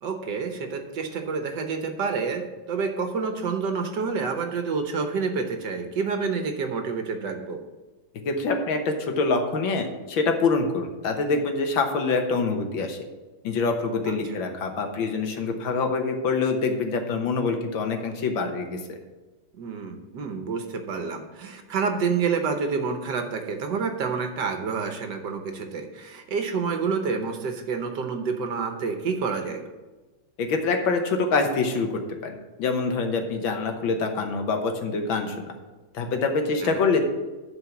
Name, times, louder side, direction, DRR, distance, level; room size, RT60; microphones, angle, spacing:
voice 1, 0.0-7.6 14.1-14.2 19.6-29.6 36.6-36.8, right 5 dB, 65° right, 5 dB, 1.5 m, -28 dB
voice 2, 8.3-13.0 13.4-19.0 30.4-31.9 32.2-35.5 35.9-37.0, left 4 dB, 75° left, 4 dB, 1.9 m, -25 dB
11.0 x 4.6 x 7.1 m, 1.2 s
omnidirectional pair, 2.2 m